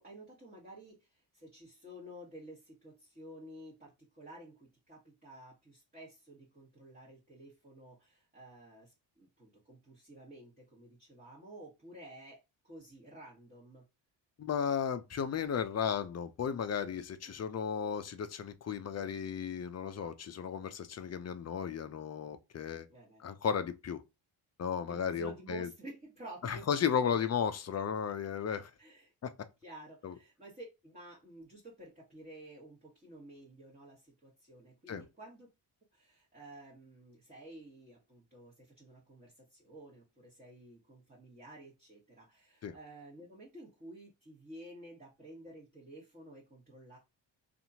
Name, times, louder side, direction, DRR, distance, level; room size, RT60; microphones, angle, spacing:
voice 1, 0.0-13.8 17.2-17.4 22.9-23.2 24.9-27.2 28.8-29.1 29.6-35.5 35.9-47.0, right 1 dB, 20° right, 1.3 m, -52 dB
voice 2, 14.4-22.9 23.2-24.0 24.6-25.7 26.4-28.7 29.2-29.3 30.0-30.1 34.9-35.0 42.6-42.7, left 7 dB, 35° left, 0.5 m, -34 dB
2.7 x 2.5 x 2.7 m
supercardioid pair, 60°, 48 cm